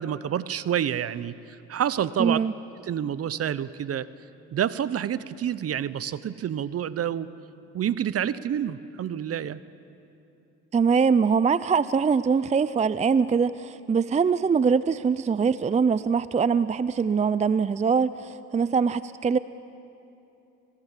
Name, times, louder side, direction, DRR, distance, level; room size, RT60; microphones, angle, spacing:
voice 1, 0.0-2.4 2.8-4.1 4.5-7.3 7.7-9.6, right 9 dB, 50° right, 17 dB, 0.8 m, -28 dB
voice 2, 2.2-2.5 10.7-19.4, right 5 dB, 20° right, 16 dB, 0.5 m, -23 dB
26.0 x 17.5 x 7.4 m, 2.8 s
supercardioid pair, 75°, 32 cm